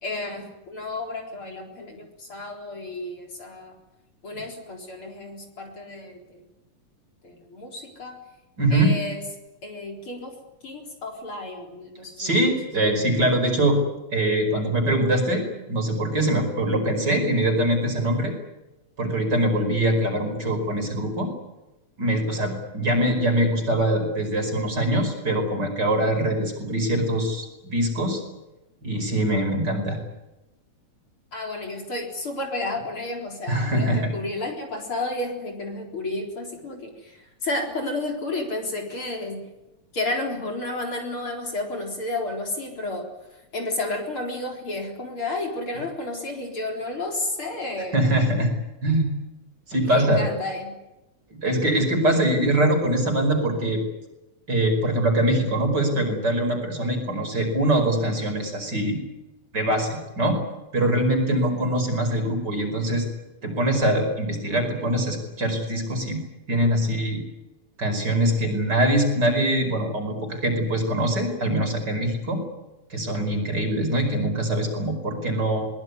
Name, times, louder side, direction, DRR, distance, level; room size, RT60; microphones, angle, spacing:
voice 1, 0.0-3.8 4.2-6.4 7.2-8.2 8.7-9.2 9.6-10.4 10.6-12.3 31.3-39.4 39.9-43.1 43.5-48.0 49.8-50.8 61.4-61.6, left 2 dB, 45° left, 2 dB, 4.8 m, -31 dB
voice 2, 8.6-9.0 12.2-13.8 14.1-18.3 19.0-21.3 22.0-28.2 28.8-30.0 33.5-34.1 47.9-48.5 48.8-49.1 49.7-50.2 51.4-53.8 54.5-59.0 59.5-60.4 60.7-63.1 63.4-66.2 66.5-67.2 67.8-72.4 72.9-75.7, right 1 dB, 35° right, 5 dB, 5.6 m, -23 dB
23.0 x 21.5 x 9.7 m, 1.0 s
omnidirectional pair, 3.4 m